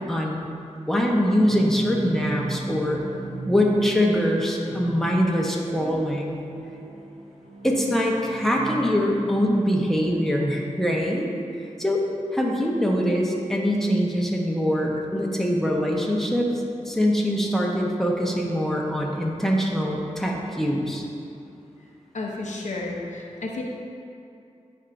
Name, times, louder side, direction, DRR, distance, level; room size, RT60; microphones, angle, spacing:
voice 1, 0.1-0.4 0.9-3.0 3.5-6.4 7.6-11.3 11.8-12.0 12.3-16.5 16.8-21.0, equal, 5° left, -2 dB, 1.1 m, -23 dB
sound 1, 1.5-9.4, right 1 dB, 70° right, 1.0 m, -36 dB
voice 2, 22.1-23.6, left 2 dB, 70° left, -2 dB, 0.9 m, -32 dB
11.0 x 4.5 x 2.7 m, 2.6 s
cardioid pair, 45°, 13 cm